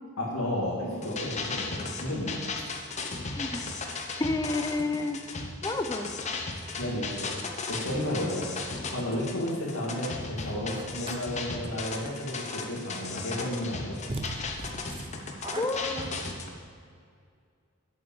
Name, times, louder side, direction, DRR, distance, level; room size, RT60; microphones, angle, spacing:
voice 1, 0.2-2.4 6.8-7.3 7.7-8.4 8.9-14.0, left 1 dB, 80° left, -7 dB, 2.1 m, -32 dB
sound 1, 0.9-16.5, left 3 dB, 30° left, 0.9 m, -36 dB
voice 2, 3.4-3.7 4.2-5.2 5.6-6.1 15.6-16.0, left 2 dB, 15° left, 7 dB, 0.5 m, -30 dB
sound 2, 10.7-11.2 13.4-13.5 14.1-16.6, right 2 dB, 25° right, 0.8 m, -39 dB
8.0 x 8.0 x 7.2 m, 2.2 s
head